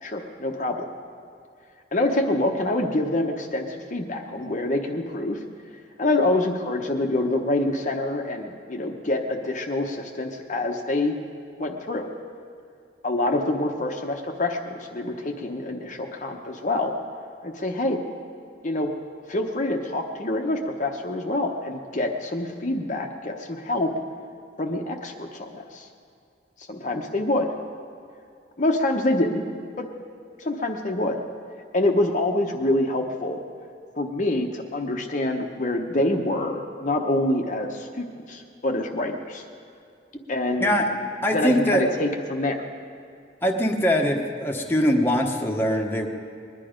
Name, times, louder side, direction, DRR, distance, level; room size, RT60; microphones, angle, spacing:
voice 1, 0.0-0.9 1.9-5.4 6.0-11.1 11.6-12.1 13.0-16.9 17.4-18.0 18.6-18.9 19.3-23.9 24.6-25.9 26.7-27.5 28.6-29.5 29.8-29.9 30.4-31.2 31.7-33.4 34.0-39.4 40.3-40.8 41.3-42.6, left 1 dB, 40° left, 2 dB, 0.8 m, -26 dB
voice 2, 41.2-41.8 43.4-46.1, equal, 10° left, 1 dB, 1.0 m, -22 dB
21.0 x 11.0 x 5.1 m, 2.4 s
head